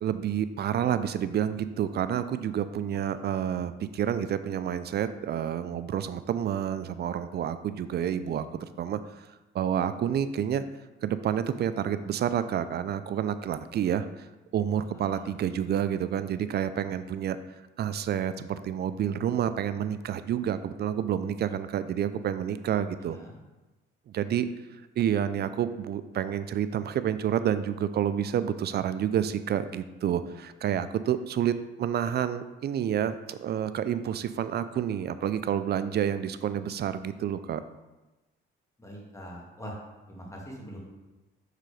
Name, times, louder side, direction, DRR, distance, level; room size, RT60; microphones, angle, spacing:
voice 1, 0.0-9.0 9.5-10.6 11.0-14.1 14.5-17.4 17.8-23.2 24.1-24.5 25.0-37.6, right 9 dB, 50° right, 12 dB, 0.4 m, -29 dB
voice 2, 23.0-23.4 38.8-39.8 40.1-40.8, equal, 15° left, -2 dB, 1.8 m, -43 dB
6.6 x 3.8 x 4.9 m, 1.1 s
cardioid pair, 95°, 21 cm